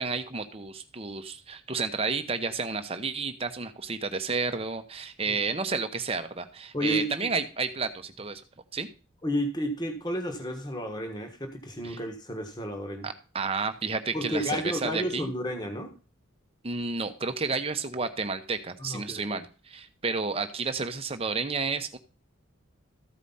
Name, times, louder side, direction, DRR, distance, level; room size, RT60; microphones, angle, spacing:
voice 1, 0.0-8.4 8.7-8.9 11.8-12.0 13.0-15.3 16.6-22.0, right 4 dB, 30° right, 8 dB, 0.9 m, -31 dB
voice 2, 6.7-7.1 9.2-13.1 14.1-15.9 18.8-19.4, equal, 20° left, 5 dB, 1.4 m, -32 dB
14.0 x 4.9 x 5.6 m, 0.36 s
head